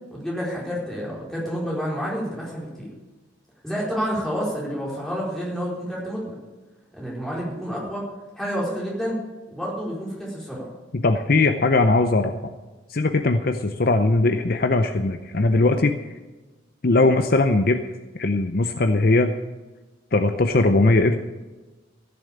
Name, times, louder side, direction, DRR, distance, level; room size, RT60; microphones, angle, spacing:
voice 1, 0.1-2.9 3.6-6.3 6.9-8.0 8.4-9.2 9.5-10.6, equal, ahead, -5 dB, 4.3 m, -29 dB
voice 2, 10.9-12.5 12.9-16.0 16.8-17.8 18.1-19.3 20.1-21.2, left 2 dB, 50° left, 7 dB, 0.7 m, -20 dB
14.5 x 7.0 x 8.5 m, 1.2 s
head